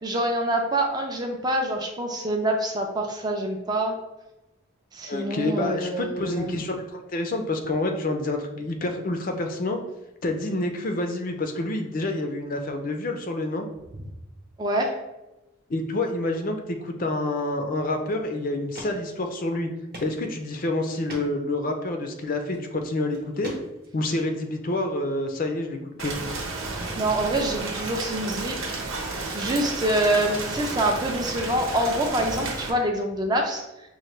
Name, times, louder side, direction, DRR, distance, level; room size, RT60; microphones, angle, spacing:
voice 1, 0.0-3.9 4.9-6.5 14.6-14.9 27.0-28.7 29.3-33.6, right 1 dB, 20° right, 2 dB, 0.4 m, -26 dB
voice 2, 5.1-9.8 10.2-13.7 15.7-19.7 20.0-23.5 23.9-26.2, left 2 dB, 40° left, 4 dB, 0.4 m, -28 dB
sound 1, 18.1-18.2 18.7-18.9 19.2-19.3 19.9-20.1 20.5-20.6 21.1-21.3 22.4-22.6 23.1-24.0, right 1 dB, 45° right, 0.9 m, -38 dB
Rain, 26.0-32.7, right 3 dB, 75° right, 0.9 m, -32 dB
5.5 x 2.2 x 3.1 m, 0.98 s
head